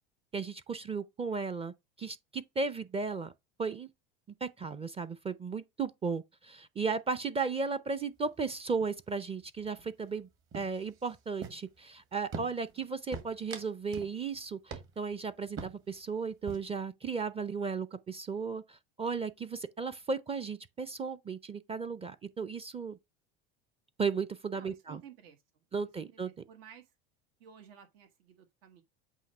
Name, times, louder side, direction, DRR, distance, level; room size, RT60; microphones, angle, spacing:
voice 1, 0.3-3.3 3.6-3.9 4.4-10.3 10.5-23.0 24.0-25.0 25.7-26.3, right 5 dB, 20° right, 0.5 m, -35 dB
sound 1, 8.2-8.5 8.8-9.2 9.4-10.2 10.5-11.9 12.3-12.8 13.1-14.2 14.4-14.5 14.7-15.1 15.6-16.0 16.3-16.8, right 5 dB, 45° right, 2.0 m, -44 dB
voice 2, 24.5-25.4 25.8-26.9 27.4-28.8, right 8 dB, 80° right, 1.5 m, -54 dB
8.2 x 2.8 x 5.4 m
supercardioid pair, 100°, 29 cm